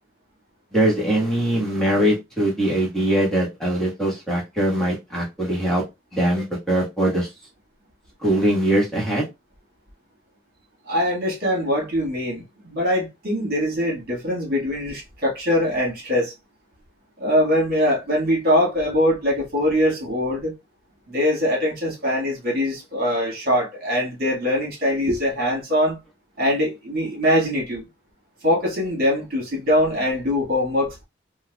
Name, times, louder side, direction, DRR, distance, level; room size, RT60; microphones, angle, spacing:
voice 1, 0.7-5.8 6.1-7.3 8.2-9.3, right 1 dB, ahead, 1.4 m, -21 dB
voice 2, 10.9-16.3 17.2-20.5 21.1-26.0 26.4-27.8 28.4-30.9, left 1 dB, 50° right, 1.8 m, -22 dB
4.5 x 2.4 x 2.3 m
head